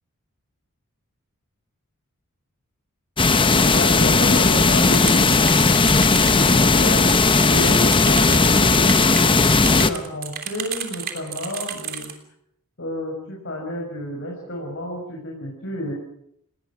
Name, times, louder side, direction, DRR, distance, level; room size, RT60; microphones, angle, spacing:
sound 1, 3.2-9.9, left 3 dB, 20° left, 0.9 m, -16 dB
voice 1, 3.5-5.5 5.8-7.1 7.5-12.1 12.8-15.9, left 1 dB, 55° left, -1 dB, 6.3 m, -30 dB
sound 2, 4.8-12.1, right 9 dB, 45° right, 3.1 m, -32 dB
30.0 x 19.0 x 6.2 m, 0.74 s
head